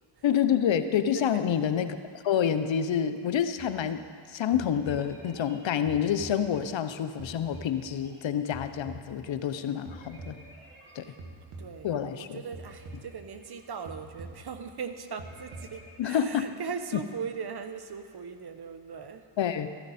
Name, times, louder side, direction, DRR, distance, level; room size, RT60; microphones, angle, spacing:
voice 1, 0.2-10.4 10.9-11.0 11.8-12.4 16.0-16.5 16.9-17.0 19.4-19.7, left 9 dB, 70° left, 10 dB, 0.8 m, -28 dB
voice 2, 1.1-1.5 6.6-6.8 11.6-19.2, right 6 dB, 55° right, 9 dB, 1.0 m, -39 dB
sound 1, 3.6-4.2 4.5-6.9 7.2-9.5 9.9-12.2 12.5-13.6 13.9-14.9 15.2-15.9, right 2 dB, 90° right, 2.0 m, -46 dB
13.5 x 13.5 x 4.2 m, 2.1 s
cardioid pair, 50°, 47 cm